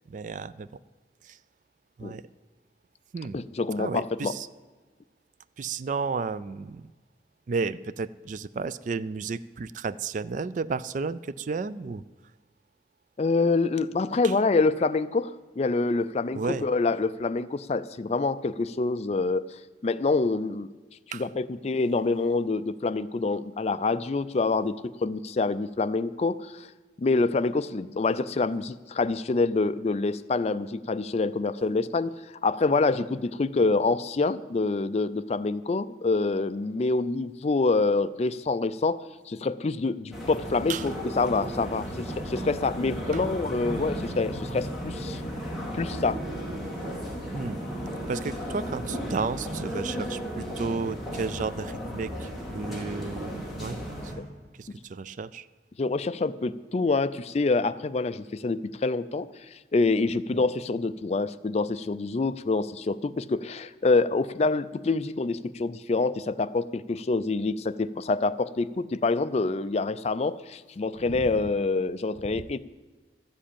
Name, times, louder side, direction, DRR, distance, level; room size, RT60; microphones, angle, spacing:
voice 1, 0.1-0.7 1.2-1.4 2.0-2.2 3.1-3.4 3.8-4.5 5.6-6.9 7.5-12.0 14.2-14.3 16.3-16.7 21.1-21.3 40.7-40.9 43.1-43.2 47.3-47.6 48.1-53.8 54.0-54.1 54.6-55.5 60.3-60.4 71.1-71.3, right 4 dB, 45° right, 16 dB, 0.4 m, -33 dB
voice 2, 3.3-4.3 13.2-15.3 15.6-19.4 19.8-20.7 21.1-26.7 27.0-32.1 32.4-39.0 39.3-45.2 45.7-46.2 55.8-59.3 59.7-72.6, left 3 dB, 35° left, 14 dB, 0.4 m, -26 dB
sound 1, 40.1-54.1, equal, ahead, 2.7 m, -34 dB
13.0 x 7.6 x 8.6 m, 1.3 s
head